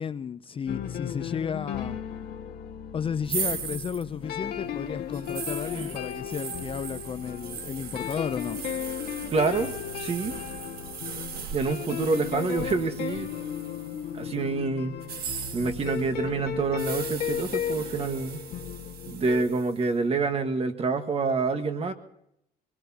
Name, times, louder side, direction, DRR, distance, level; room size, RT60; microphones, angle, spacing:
voice 1, 0.0-2.0 2.9-8.6, left 7 dB, 30° left, 0.5 m, -33 dB
sound 1, 0.7-19.4, left 9 dB, 70° left, 1.7 m, -35 dB
sound 2, 3.2-14.2 15.0-19.8, right 7 dB, 65° right, 1.5 m, -39 dB
voice 2, 9.3-9.7 10.0-10.3 11.5-13.3 14.1-15.0 15.5-18.4 19.1-21.9, right 4 dB, 35° right, 1.5 m, -27 dB
23.5 x 20.5 x 2.9 m
cardioid pair, 110°, 17 cm